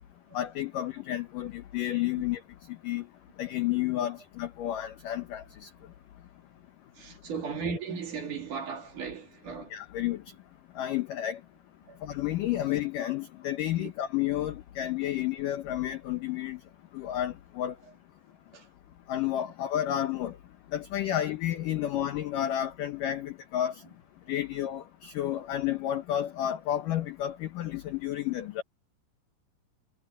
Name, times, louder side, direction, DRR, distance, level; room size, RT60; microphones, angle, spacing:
voice 1, 0.3-2.4 2.8-3.0 3.4-5.7 9.7-10.2 10.8-11.4 12.0-16.6 16.9-17.7 19.1-20.4 20.7-23.8 24.3-28.6, left 12 dB, 85° left, 1.9 m, -31 dB
voice 2, 7.0-9.7 11.9-12.0 13.8-13.9 18.5-18.7 21.8-21.9, right 5 dB, 50° right, 3.8 m, -36 dB
omnidirectional pair, 5.2 m